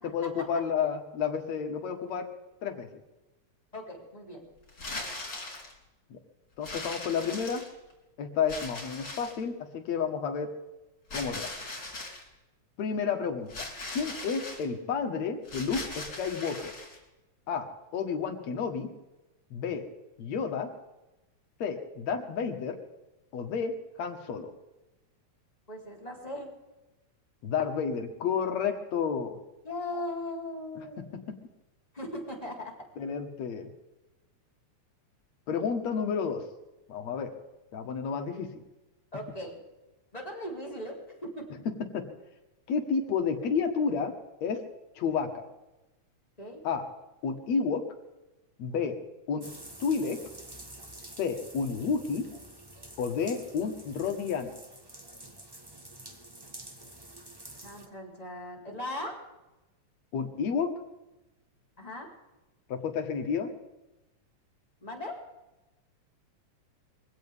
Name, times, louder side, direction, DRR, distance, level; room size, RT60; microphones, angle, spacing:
voice 1, 0.0-2.3 2.6-2.9 6.1-6.2 6.6-7.6 8.2-10.5 11.1-11.5 12.8-13.7 13.9-16.7 17.5-17.7 17.9-18.9 19.5-19.9 20.2-20.7 21.6-22.8 23.3-24.5 27.4-29.4 30.8-31.1 33.0-33.7 35.5-36.4 36.9-37.3 37.7-38.5 41.9-42.1 42.7-44.1 44.4-44.6 45.0-45.5 46.6-46.8 47.2-47.8 48.6-49.0 49.3-49.5 49.8-50.2 51.2-52.3 53.0-54.6 60.1-60.8 62.7-63.5, left 6 dB, 65° left, 6 dB, 2.7 m, -31 dB
voice 2, 3.7-4.4 25.7-26.5 29.6-31.1 31.9-32.9 39.1-39.5 40.1-41.6 46.4-46.6 57.6-59.2 61.8-62.1 64.8-65.2, left 1 dB, 10° left, -2 dB, 3.6 m, -38 dB
sound 1, 4.7-5.7 6.6-7.9 8.5-9.4 11.1-12.2 13.5-14.6 15.4-17.0, left 2 dB, 35° left, 4.7 m, -39 dB
sound 2, 49.4-57.9, right 1 dB, 40° right, 0.3 m, -48 dB
23.0 x 16.5 x 3.6 m, 1.0 s
omnidirectional pair, 3.4 m